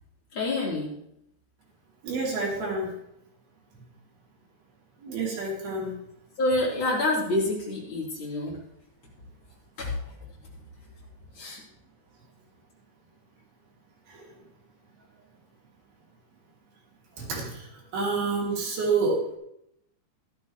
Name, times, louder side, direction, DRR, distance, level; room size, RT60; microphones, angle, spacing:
voice 1, 0.3-1.0 6.4-8.6 9.8-10.2 11.3-11.6, left 2 dB, 30° left, -5 dB, 4.0 m, -27 dB
voice 2, 2.0-2.9 5.0-5.9 14.1-14.3 17.2-19.4, right 3 dB, 60° right, -4 dB, 4.6 m, -28 dB
14.0 x 12.5 x 3.2 m, 0.77 s
omnidirectional pair, 5.2 m